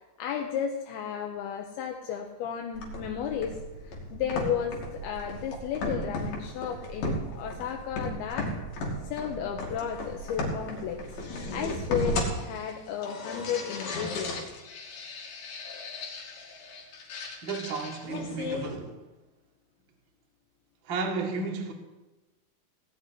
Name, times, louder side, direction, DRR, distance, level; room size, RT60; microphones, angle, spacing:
voice 1, 0.2-3.6 3.8-8.5 9.0-11.0 11.5-14.4, left 8 dB, 75° left, 2.5 m, -33 dB
sound 1, 2.7-18.7, left 1 dB, 55° left, 4.1 m, -36 dB
voice 2, 17.4-18.9 20.8-21.7, right 4 dB, 50° right, 1.4 m, -33 dB
17.5 x 6.5 x 9.9 m
omnidirectional pair, 5.4 m